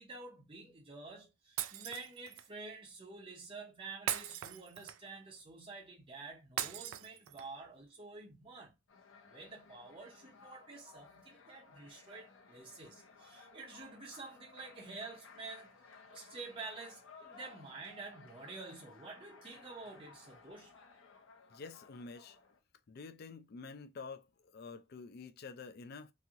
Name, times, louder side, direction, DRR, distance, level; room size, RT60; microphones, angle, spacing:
voice 1, 0.0-8.8 9.3-15.7 16.1-20.7, right 3 dB, 25° right, 0.6 m, -49 dB
Shatter, 1.6-2.5 4.1-5.2 6.6-7.6, right 11 dB, 85° right, 0.3 m, -39 dB
sound 1, 8.9-22.6, left 4 dB, 80° left, 0.7 m, -58 dB
voice 2, 21.5-22.4 22.9-26.1, left 4 dB, 50° left, 0.4 m, -48 dB
3.0 x 2.8 x 2.4 m
head